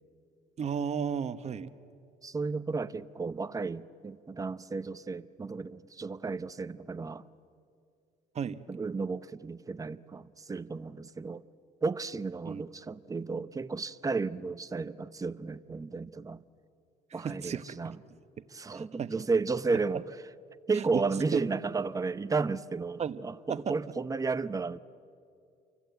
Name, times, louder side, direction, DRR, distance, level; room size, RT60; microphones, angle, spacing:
voice 1, 0.6-1.7 8.3-8.6 12.5-12.6 17.2-17.9 18.7-19.1 20.7-21.0 21.3-21.6 23.0-23.7, right 7 dB, 40° right, 1.1 m, -34 dB
voice 2, 2.2-7.3 8.7-11.4 11.8-16.4 17.1-18.0 18.5-20.0 20.7-24.8, right 4 dB, 20° right, 0.8 m, -33 dB
29.5 x 24.5 x 8.2 m
cardioid pair, 110°, 17 cm